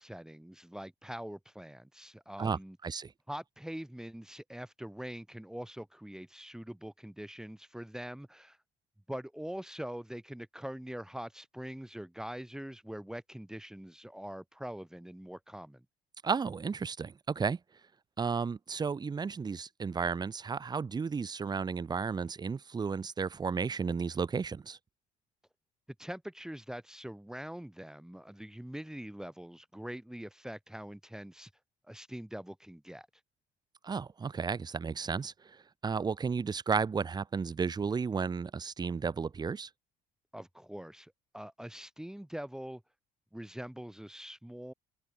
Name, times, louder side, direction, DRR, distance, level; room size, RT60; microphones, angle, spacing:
voice 1, 0.0-2.8 3.3-8.6 9.1-15.8 26.0-31.5 31.8-33.1 40.3-42.8 43.3-44.7, equal, 5° right, 2.4 m, -43 dB
voice 2, 2.4-3.1 16.2-17.6 18.2-24.8 33.8-39.7, right 5 dB, 25° right, 0.9 m, -33 dB
cardioid pair, 110°, 17 cm